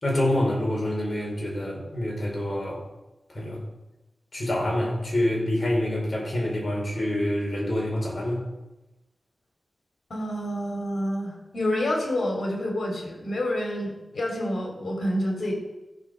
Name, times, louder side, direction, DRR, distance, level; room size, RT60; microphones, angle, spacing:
voice 1, 0.0-2.8 3.3-3.6 4.3-8.4, left 1 dB, 45° left, -2 dB, 4.8 m, -26 dB
voice 2, 10.1-15.5, left 1 dB, 75° left, 1 dB, 3.6 m, -28 dB
15.5 x 7.4 x 5.4 m, 1.0 s
wide cardioid pair, 70°, 0 cm